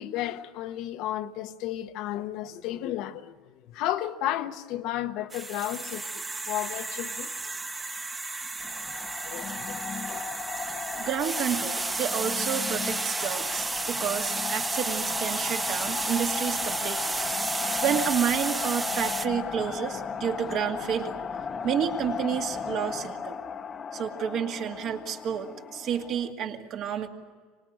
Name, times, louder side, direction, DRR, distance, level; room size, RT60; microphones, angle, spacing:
voice 1, 0.0-7.3 9.2-10.2, left 13 dB, 65° left, 1.0 m, -33 dB
sound 1, 5.3-19.3, right 3 dB, 15° right, 1.0 m, -32 dB
sound 2, 8.6-26.3, left 6 dB, 30° left, 0.8 m, -36 dB
voice 2, 10.9-17.1 17.8-21.2 21.6-23.4 23.9-27.1, right 9 dB, 50° right, 2.2 m, -30 dB
25.0 x 19.5 x 9.0 m
supercardioid pair, 125°, 0 cm